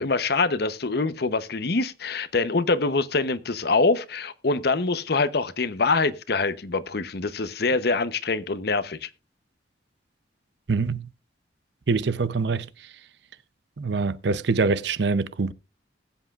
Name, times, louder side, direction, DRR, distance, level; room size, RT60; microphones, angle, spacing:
voice 1, 0.0-9.1, left 3 dB, 60° left, 0.8 m, -24 dB
voice 2, 10.7-11.1 11.9-12.7 13.8-15.5, right 4 dB, 65° right, 0.6 m, -24 dB
20.0 x 8.1 x 2.4 m
head